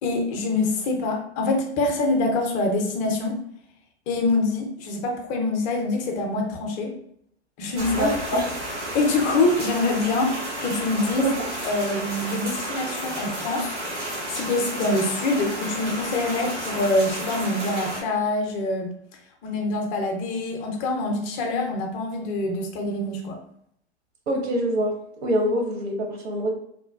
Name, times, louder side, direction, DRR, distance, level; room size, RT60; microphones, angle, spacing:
voice 1, 0.0-3.4 4.1-6.9 7.6-8.4 8.9-11.3 11.6-19.0 19.4-23.4, left 2 dB, 25° left, 2 dB, 0.4 m, -25 dB
sound 1, 7.8-18.0, right 1 dB, 90° right, 1.2 m, -32 dB
voice 2, 8.0-8.5 11.2-11.5 24.3-26.5, equal, 65° right, 2 dB, 0.8 m, -26 dB
3.1 x 2.2 x 2.3 m, 0.70 s
figure-of-eight pair, 105°, 34 cm